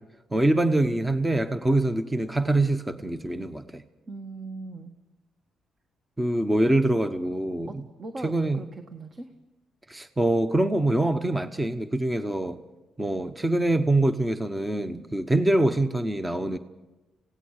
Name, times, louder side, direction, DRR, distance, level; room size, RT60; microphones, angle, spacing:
voice 1, 0.3-3.8 6.2-7.8 8.2-8.6 9.9-12.6 13.0-16.6, right 1 dB, 15° right, 1.0 m, -24 dB
voice 2, 4.1-4.9 7.7-9.3, right 3 dB, 40° right, 1.6 m, -40 dB
27.0 x 17.5 x 6.6 m
cardioid pair, 90°, 0 cm